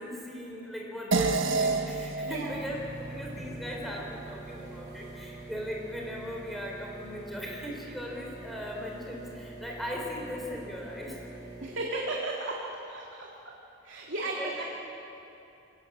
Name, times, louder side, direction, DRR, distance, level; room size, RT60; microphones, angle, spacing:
voice 1, 0.0-11.2 14.2-14.6, equal, ahead, -2 dB, 3.9 m, -38 dB
sound 1, 1.1-5.8, right 3 dB, 90° right, 1.6 m, -32 dB
voice 2, 2.2-2.5 11.6-12.6 12.9-13.6 13.8-14.6, right 2 dB, 70° right, -2 dB, 2.4 m, -35 dB
sound 2, 2.5-11.7, right 2 dB, 20° right, 6.3 m, -45 dB
24.0 x 18.5 x 7.4 m, 2.9 s
head